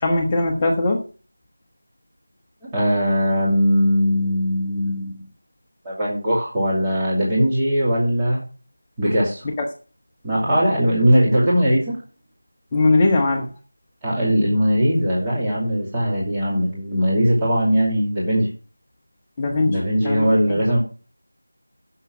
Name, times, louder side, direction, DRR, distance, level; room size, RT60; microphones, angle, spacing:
voice 1, 0.0-1.0 12.7-13.5 19.4-20.6, left 2 dB, 15° left, 0 dB, 1.3 m, -20 dB
voice 2, 2.7-5.3 5.8-8.4 9.0-9.4 10.2-12.0 14.0-18.5 19.6-20.8, equal, 10° right, -8 dB, 2.7 m, -20 dB
11.0 x 7.3 x 6.2 m, 0.37 s
figure-of-eight pair, 175°, 0 cm